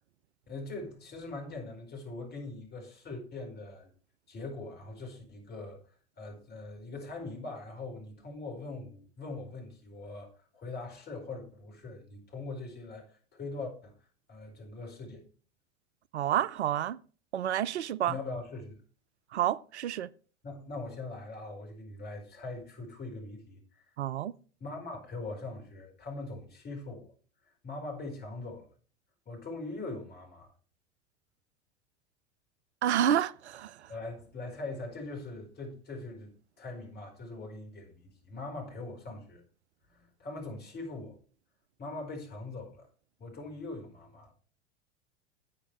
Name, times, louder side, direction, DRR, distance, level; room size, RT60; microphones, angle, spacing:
voice 1, 0.5-3.9 4.3-5.8 6.2-13.9 14.3-15.2 18.1-18.8 20.4-23.9 24.6-27.1 27.4-28.7 29.3-30.5 33.9-39.4 39.9-41.2 41.8-42.9 43.2-44.3, left 2 dB, 30° left, 4.7 m, -42 dB
voice 2, 16.1-17.0 17.3-18.2 19.3-20.1 24.0-24.3 32.8-33.9, right 11 dB, 70° right, 0.5 m, -29 dB
12.5 x 8.3 x 3.3 m
figure-of-eight pair, 80°, 34 cm